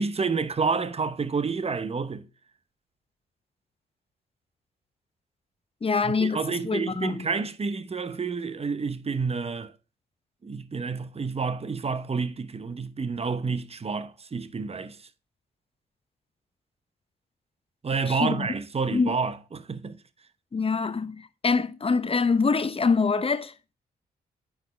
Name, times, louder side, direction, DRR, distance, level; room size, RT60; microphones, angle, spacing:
voice 1, 0.0-2.3 6.0-9.7 10.4-15.0 17.8-20.0, right 4 dB, 30° right, 0.8 m, -29 dB
voice 2, 5.8-7.3 18.1-18.5 18.9-19.1 20.5-23.5, left 4 dB, 25° left, 0.7 m, -25 dB
9.1 x 4.8 x 3.2 m
hypercardioid pair, 40°, 21 cm